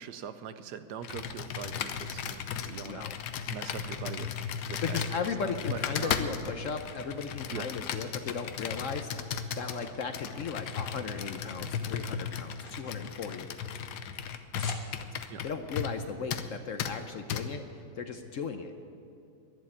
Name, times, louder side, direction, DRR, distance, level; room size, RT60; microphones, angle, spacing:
voice 1, 0.0-3.1 3.5-4.3 4.7-5.0 5.4-6.2 7.5-7.7 15.3-15.4, right 8 dB, 75° right, 11 dB, 1.2 m, -42 dB
Computer keyboard, 1.0-16.0 16.3-16.5 16.8-16.9 17.3-17.4, left 7 dB, 75° left, 1.3 m, -36 dB
sound 1, 3.2-5.4 5.9-7.0 7.3-8.3 8.7-11.3 11.6-15.4, left 3 dB, 35° left, 1.3 m, -51 dB
voice 2, 4.8-13.5 15.0-18.8, left 5 dB, 60° left, 7 dB, 0.9 m, -37 dB
11.5 x 11.0 x 8.6 m, 2.7 s
omnidirectional pair, 1.9 m